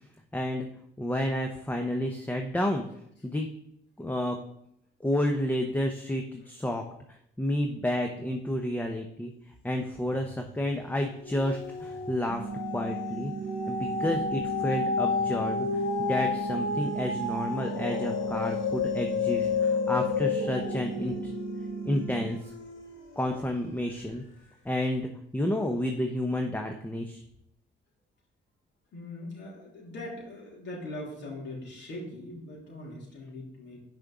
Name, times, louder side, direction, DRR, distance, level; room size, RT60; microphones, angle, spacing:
voice 1, 0.3-0.7 1.0-2.8 3.2-3.5 4.0-4.4 5.0-6.8 7.4-13.3 13.7-21.3 21.8-22.5 23.2-24.2 24.6-27.2, left 1 dB, 10° left, 3 dB, 0.8 m, -30 dB
sound 1, 10.1-10.6 11.0-23.5 24.0-24.1, left 5 dB, 80° left, 2.1 m, -31 dB
sound 2, 12.3-22.3, right 6 dB, 20° right, 0.4 m, -37 dB
voice 2, 28.9-33.8, left 1 dB, 65° left, -4 dB, 3.2 m, -41 dB
6.4 x 5.2 x 6.1 m, 0.73 s
cardioid pair, 90°, 20 cm